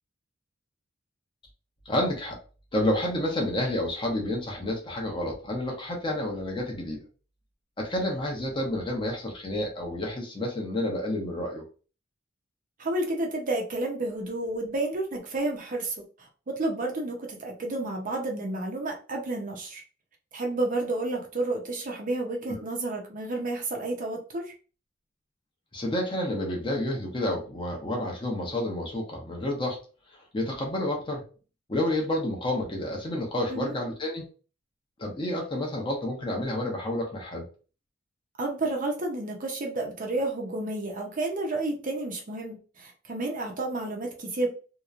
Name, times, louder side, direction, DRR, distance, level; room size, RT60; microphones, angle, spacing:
voice 1, 1.9-2.4 2.7-7.0 7.8-11.6 25.7-29.8 30.1-31.2 31.7-34.3 35.0-37.5, left 1 dB, 25° left, 0 dB, 0.7 m, -29 dB
voice 2, 12.8-19.8 20.3-24.5 33.5-33.7 38.4-44.5, right 2 dB, 40° right, 1 dB, 0.6 m, -31 dB
2.9 x 2.2 x 2.4 m, 0.36 s
head